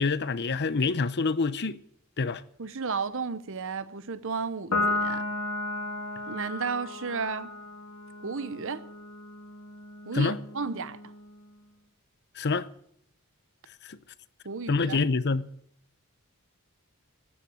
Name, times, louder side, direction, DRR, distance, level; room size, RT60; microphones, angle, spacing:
voice 1, 0.0-1.8 2.2-2.4 10.1-10.4 12.4-12.7 13.9-14.0 14.7-15.4, left 4 dB, 50° left, 0.7 m, -26 dB
voice 2, 2.6-5.2 6.3-7.5 8.2-8.8 10.1-11.0 14.4-15.0, right 5 dB, 60° right, 0.9 m, -33 dB
Piano, 4.7-11.4, left 2 dB, 75° left, 1.9 m, -34 dB
13.5 x 10.0 x 9.5 m
head